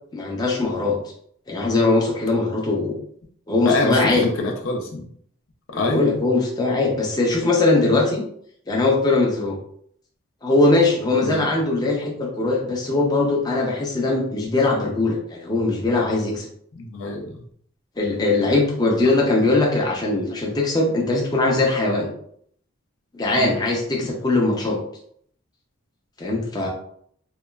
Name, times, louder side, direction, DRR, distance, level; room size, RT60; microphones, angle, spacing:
voice 1, 0.1-0.9 1.5-3.0 3.5-4.3 5.7-8.2 8.7-9.6 10.4-16.5 18.0-22.1 23.1-24.8 26.2-26.7, left 2 dB, 20° left, -2 dB, 0.4 m, -21 dB
voice 2, 3.6-5.1 5.8-6.0 11.2-11.5 16.7-17.4 23.4-23.6, left 3 dB, 75° left, 2 dB, 0.5 m, -25 dB
2.9 x 2.2 x 2.2 m, 0.64 s
head